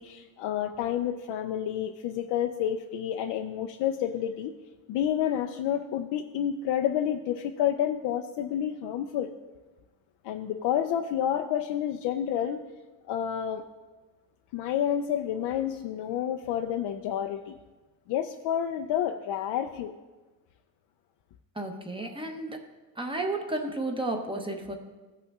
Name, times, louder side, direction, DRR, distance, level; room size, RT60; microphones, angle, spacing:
voice 1, 0.0-4.5 4.9-9.3 10.2-12.6 13.1-13.6 14.5-17.5 18.1-19.9, left 10 dB, 65° left, 5 dB, 0.6 m, -29 dB
voice 2, 21.6-22.6 23.0-24.7, right 2 dB, 10° right, 3 dB, 0.8 m, -32 dB
15.5 x 5.6 x 3.6 m, 1.2 s
cardioid pair, 125°, 45 cm